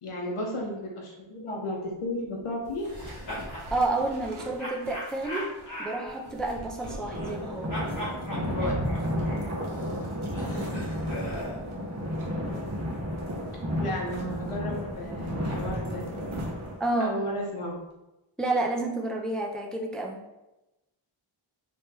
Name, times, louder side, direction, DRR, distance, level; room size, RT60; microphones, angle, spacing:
voice 1, 0.0-3.0 8.5-8.7 13.8-16.0 17.0-17.8, left 1 dB, 90° left, -1 dB, 0.7 m, -33 dB
sound 1, 2.6-17.0, right 1 dB, 70° right, 0.9 m, -44 dB
sound 2, 2.8-3.7 4.6-7.4 7.7-11.6, equal, 35° left, 1.2 m, -39 dB
voice 2, 3.7-7.7 16.8-17.2 18.4-20.2, right 2 dB, ahead, 0 dB, 0.4 m, -30 dB
sound 3, 7.1-16.7, equal, 30° right, 0.8 m, -32 dB
3.2 x 2.9 x 3.3 m, 0.98 s
wide cardioid pair, 75°, 50 cm